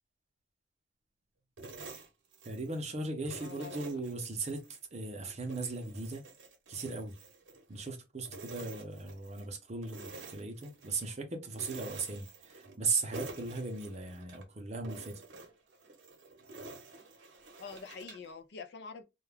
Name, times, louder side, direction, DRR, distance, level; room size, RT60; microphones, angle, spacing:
sound 1, 1.6-2.8 3.3-4.8 5.2-7.9 8.2-9.5 9.8-11.1 11.5-12.8 13.1-14.4 14.8-18.3, right 3 dB, 75° right, 0.8 m, -49 dB
voice 1, 2.4-6.2 6.7-7.2 7.7-15.2, right 3 dB, 35° right, 0.6 m, -37 dB
voice 2, 3.4-4.0 17.6-19.0, left 5 dB, 60° left, 0.4 m, -46 dB
2.3 x 2.2 x 3.3 m
head